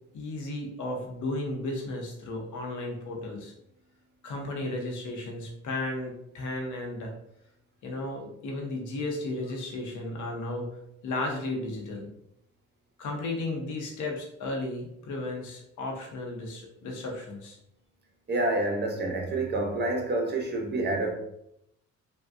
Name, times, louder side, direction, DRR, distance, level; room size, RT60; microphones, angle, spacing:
voice 1, 0.1-3.5 4.2-7.1 7.8-10.7 11.0-12.1 13.0-17.6, left 2 dB, 75° left, 0.8 m, -34 dB
voice 2, 18.3-21.1, right 2 dB, 35° right, 0.7 m, -28 dB
3.4 x 2.2 x 2.5 m
cardioid pair, 90°, 30 cm